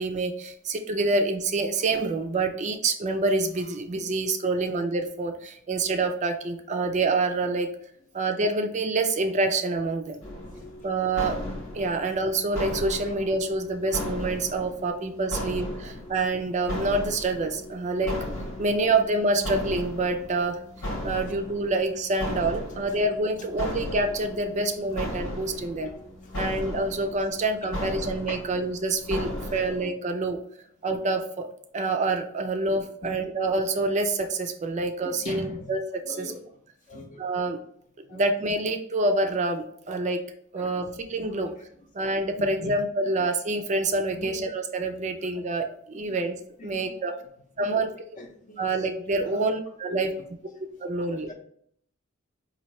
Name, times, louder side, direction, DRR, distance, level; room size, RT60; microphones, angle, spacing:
voice 1, 0.0-7.7 8.1-10.2 10.8-11.4 11.7-18.2 18.6-20.6 21.0-25.9 26.3-30.4 30.8-31.5 31.7-35.8 36.1-36.2 37.2-37.6 38.1-40.2 40.5-41.5 41.9-46.4 46.6-47.1 47.6-47.9 48.6-50.1 50.8-51.3, right 2 dB, 35° right, 5 dB, 0.4 m, -27 dB
sound 1, 10.2-29.9, left 1 dB, 90° left, 1.2 m, -36 dB
voice 2, 35.0-35.7 36.0-36.4 36.9-37.5 38.1-38.3 40.6-40.9 41.3-41.5 42.6-42.8 43.2-43.3 44.1-44.4 45.2-45.3 45.9-46.2 46.6-46.9 47.6-47.8 48.2-48.7 49.2-49.5 49.9-50.2 51.1-51.3, left 1 dB, 40° left, 3 dB, 0.6 m, -40 dB
4.2 x 2.6 x 3.0 m, 0.66 s
head